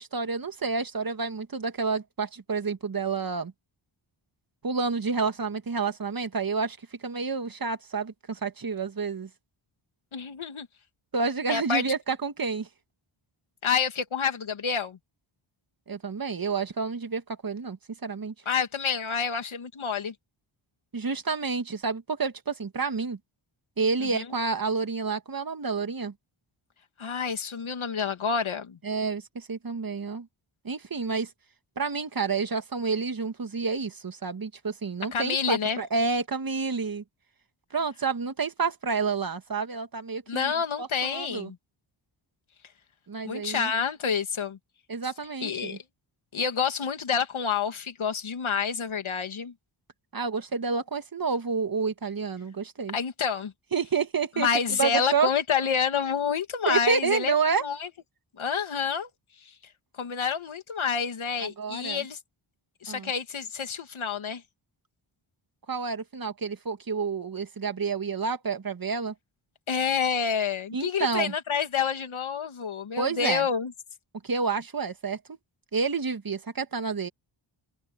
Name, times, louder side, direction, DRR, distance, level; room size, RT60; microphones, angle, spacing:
voice 1, 0.0-3.5 4.6-9.3 11.1-12.7 15.9-18.3 20.9-23.2 23.8-26.1 28.8-30.3 30.6-31.3 31.8-37.0 37.7-40.5 40.8-41.5 43.1-43.7 44.9-45.8 50.1-53.0 53.7-54.5 54.8-55.3 56.7-57.6 61.4-62.0 62.9-63.1 65.7-69.1 70.7-71.3 73.0-73.5 74.2-75.4 75.7-77.1, right 5 dB, 45° right, 2.1 m, -29 dB
voice 2, 10.1-10.7 11.5-11.8 13.6-15.0 18.5-20.1 24.0-24.3 27.0-28.8 35.1-35.8 40.3-41.6 43.2-44.6 45.4-45.8 46.3-49.5 52.9-53.5 54.4-57.3 57.6-57.9 58.4-59.1 59.4-59.5 60.0-62.2 62.8-64.4 69.7-73.7, left 6 dB, 70° left, 2.5 m, -28 dB
cardioid pair, 75°, 50 cm